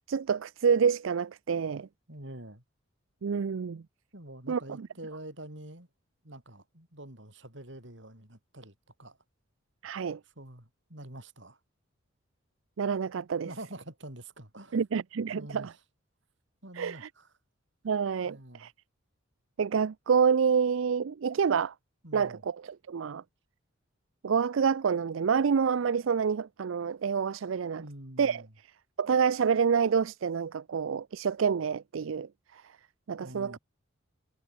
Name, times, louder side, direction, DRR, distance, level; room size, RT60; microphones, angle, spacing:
voice 1, 0.1-1.9 3.2-3.8 4.5-4.6 9.8-10.2 12.8-13.5 14.7-15.7 16.8-17.1 17.8-18.7 19.6-21.7 22.1-23.2 24.2-27.9 28.2-28.4 29.0-32.6 33.1-33.6, right 6 dB, 80° right, 0.4 m, -28 dB
voice 2, 2.1-2.6 4.1-5.9 6.2-9.2 10.2-11.6 13.4-14.8 15.3-15.8 16.6-17.3 18.2-18.7 22.0-22.4 27.8-28.5 33.2-33.6, right 1 dB, 65° right, 6.6 m, -46 dB
head